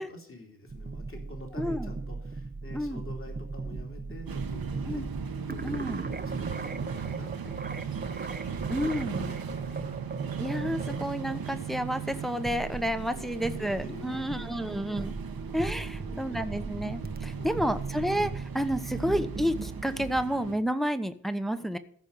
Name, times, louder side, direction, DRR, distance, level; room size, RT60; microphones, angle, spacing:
voice 1, 0.0-5.1 5.4-10.1 13.1-13.2 13.5-14.9 15.5-15.6 15.9-16.5 17.4-17.8 18.9-19.1, left 1 dB, 35° left, 1 dB, 2.9 m, -47 dB
sound 1, 0.7-20.2, right 4 dB, 25° right, 0.7 m, -39 dB
voice 2, 1.6-1.9 2.7-3.0 4.9-5.0 5.6-6.0 8.7-9.4 10.4-15.1 15.5-21.8, equal, ahead, 8 dB, 0.9 m, -30 dB
sound 2, 4.3-20.6, right 6 dB, 80° right, 1.0 m, -38 dB
14.5 x 5.3 x 6.8 m, 0.62 s
wide cardioid pair, 85°, 35 cm